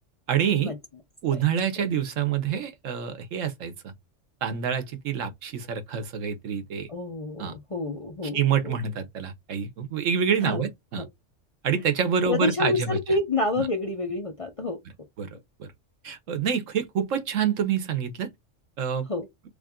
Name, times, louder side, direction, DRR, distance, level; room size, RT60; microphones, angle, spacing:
voice 1, 0.3-0.7 1.2-3.9 4.4-6.9 7.4-7.6 8.3-11.1 11.6-13.0 15.2-15.3 15.6-15.7 16.0-18.3 18.8-19.1, right 7 dB, 85° right, 1.2 m, -27 dB
voice 2, 6.9-8.8 10.4-10.6 11.0-11.1 12.3-14.8 19.1-19.3, left 2 dB, 40° left, 0.5 m, -28 dB
3.4 x 2.5 x 3.6 m
omnidirectional pair, 1.3 m